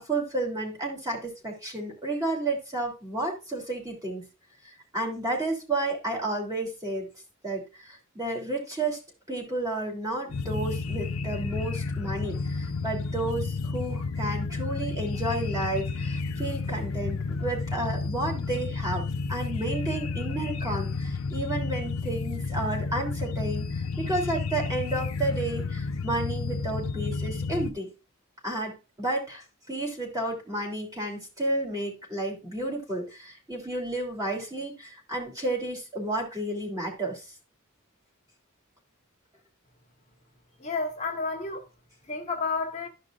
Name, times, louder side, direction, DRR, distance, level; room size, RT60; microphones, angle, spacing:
voice 1, 0.0-4.2 4.6-7.1 7.4-9.0 9.3-27.9 28.4-28.7 29.0-37.2, right 2 dB, 15° right, 3.0 m, -32 dB
sound 1, 10.3-27.7, left 4 dB, 85° left, 0.6 m, -31 dB
voice 2, 40.6-41.7 42.0-42.9, left 4 dB, 35° left, 1.5 m, -31 dB
13.0 x 5.3 x 2.5 m
head